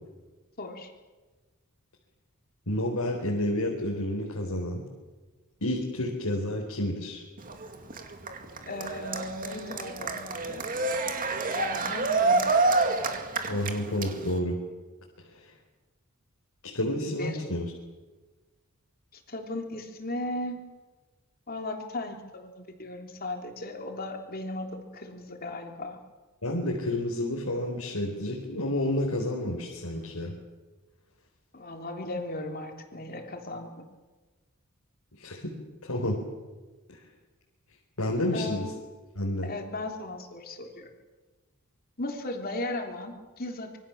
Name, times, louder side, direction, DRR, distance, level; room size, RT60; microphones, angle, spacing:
voice 1, 0.6-0.9 8.7-10.7 11.5-12.7 17.2-17.4 19.1-20.6 21.5-26.0 31.5-33.9 38.3-38.7 39.4-40.9 42.0-43.8, left 2 dB, 40° left, 3 dB, 3.4 m, -36 dB
voice 2, 2.7-4.8 5.6-7.2 13.5-14.6 15.3-15.4 16.7-17.7 26.4-30.3 35.2-35.5 35.8-36.2 38.0-38.7 39.1-39.5, left 1 dB, 85° left, -1 dB, 4.3 m, -30 dB
Cheering, 7.4-14.4, right 3 dB, 40° right, 2.3 m, -28 dB
26.0 x 23.5 x 7.3 m, 1.2 s
head